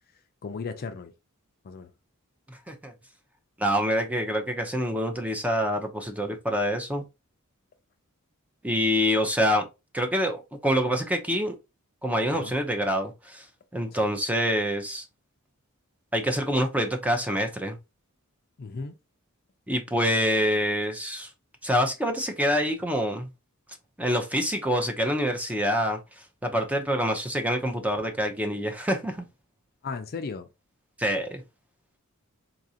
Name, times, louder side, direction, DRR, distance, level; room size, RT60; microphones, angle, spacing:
voice 1, 0.4-1.1 1.6-1.9 12.3-12.6 13.9-14.0 18.6-19.0 29.8-30.5, left 4 dB, 45° left, 0.4 m, -36 dB
voice 2, 2.5-2.9 3.6-7.0 8.6-9.6 9.9-11.5 12.0-13.4 13.7-15.0 16.1-17.8 19.7-21.3 21.6-23.3 24.0-26.0 26.4-29.2 31.0-31.4, equal, 5° right, 0.6 m, -26 dB
4.0 x 2.5 x 2.7 m
head